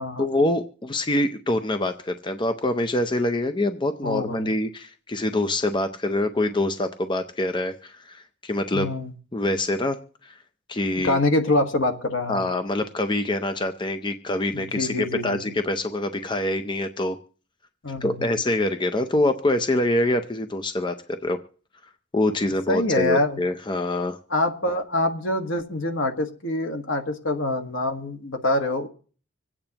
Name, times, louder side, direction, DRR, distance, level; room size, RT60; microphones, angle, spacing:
voice 1, 0.2-8.9 9.3-10.0 10.2-10.4 10.7-11.2 12.3-17.2 18.0-21.4 22.1-24.2, left 1 dB, 25° left, 8 dB, 0.6 m, -25 dB
voice 2, 4.0-4.5 8.7-9.1 11.0-12.5 14.5-15.4 17.8-18.3 22.7-23.4 24.3-28.9, left 2 dB, 70° left, 5 dB, 1.4 m, -25 dB
26.0 x 8.8 x 2.9 m, 0.41 s
head